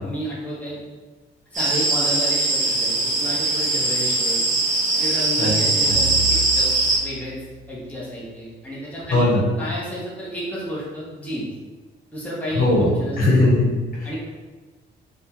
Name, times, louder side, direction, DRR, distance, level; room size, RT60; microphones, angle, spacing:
voice 1, 0.0-0.8 1.5-4.4 5.0-6.7 7.0-7.4 7.7-9.3 9.6-11.5 12.1-13.4 14.0-14.2, equal, 5° left, -7 dB, 1.0 m, -31 dB
sound 1, 1.5-7.0, right 2 dB, 40° right, 0.9 m, -21 dB
sound 2, 5.8-7.7, right 2 dB, 85° right, 0.6 m, -31 dB
voice 2, 9.1-9.5 12.5-12.9 13.2-14.2, left 2 dB, 50° left, -6 dB, 1.1 m, -19 dB
3.4 x 2.3 x 2.9 m, 1.3 s
cardioid pair, 90°, 20 cm